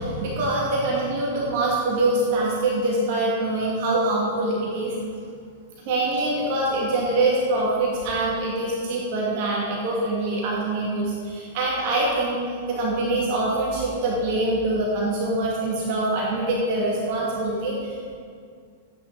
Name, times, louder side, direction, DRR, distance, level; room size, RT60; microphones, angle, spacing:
voice 1, 0.0-4.9 5.8-12.4 12.7-18.1, right 2 dB, 50° right, -4 dB, 2.4 m, -24 dB
12.0 x 9.4 x 4.1 m, 2.2 s
figure-of-eight pair, 100°, 0 cm